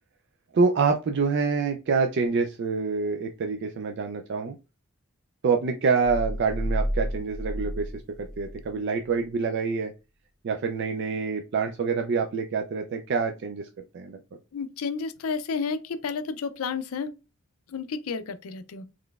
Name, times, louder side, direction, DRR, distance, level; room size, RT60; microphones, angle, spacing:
voice 1, 0.5-4.5 5.4-9.9 10.4-13.7 13.9-14.2, right 5 dB, 55° right, 0.3 m, -26 dB
sound 1, 6.0-8.7, equal, ahead, 0.7 m, -31 dB
voice 2, 14.5-17.1 17.7-18.8, left 5 dB, 85° left, 0.4 m, -31 dB
3.9 x 3.1 x 2.3 m
head